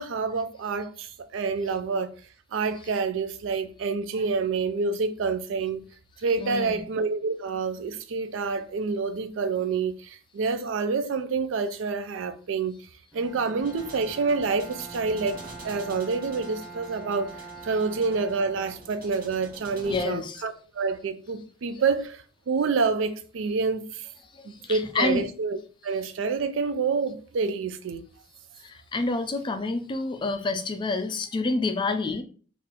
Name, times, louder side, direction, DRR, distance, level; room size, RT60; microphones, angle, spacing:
voice 1, 0.0-2.1 2.5-5.8 6.2-12.7 13.1-15.4 15.6-24.1 24.4-28.0, right 4 dB, 75° right, 0.4 m, -28 dB
voice 2, 6.4-6.8 19.9-20.4 24.3-25.3 28.6-32.2, left 3 dB, 25° left, 0.3 m, -28 dB
Bowed string instrument, 13.1-19.3, right 3 dB, 5° left, 0.8 m, -44 dB
sound 1, 13.6-20.0, right 2 dB, 45° right, 1.0 m, -47 dB
3.6 x 2.5 x 2.9 m
head